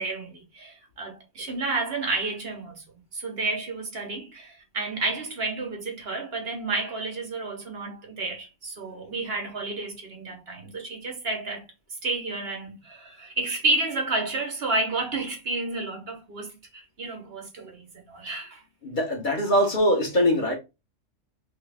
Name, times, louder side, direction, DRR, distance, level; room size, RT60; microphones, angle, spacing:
voice 1, 0.0-2.8 3.1-11.6 12.0-18.6, right 3 dB, 55° right, 1.1 m, -31 dB
voice 2, 18.8-20.5, equal, 40° left, 1.3 m, -22 dB
3.3 x 3.0 x 3.3 m
omnidirectional pair, 1.3 m